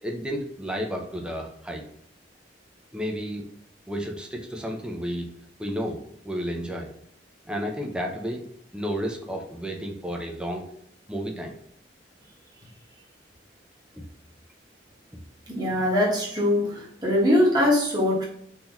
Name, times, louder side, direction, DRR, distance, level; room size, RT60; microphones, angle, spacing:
voice 1, 0.0-1.8 2.9-3.5 3.9-5.3 5.6-6.0 6.2-6.9 7.5-8.4 8.7-10.6 11.1-11.5 14.0-14.1, equal, 5° right, 1 dB, 0.6 m, -31 dB
voice 2, 15.5-18.3, left 1 dB, 25° right, -5 dB, 1.1 m, -22 dB
3.9 x 2.8 x 3.0 m, 0.68 s
head